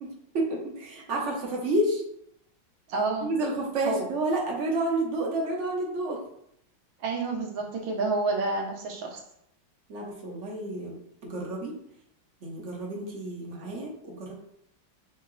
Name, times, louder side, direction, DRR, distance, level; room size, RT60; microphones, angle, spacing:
voice 1, 0.3-2.0 3.2-6.2 9.9-11.7 12.4-14.3, right 1 dB, 45° right, -2 dB, 1.0 m, -30 dB
voice 2, 2.9-3.3 3.8-4.1 7.0-9.2, right 3 dB, 75° right, 1 dB, 1.6 m, -29 dB
4.6 x 2.8 x 3.1 m, 0.74 s
omnidirectional pair, 2.1 m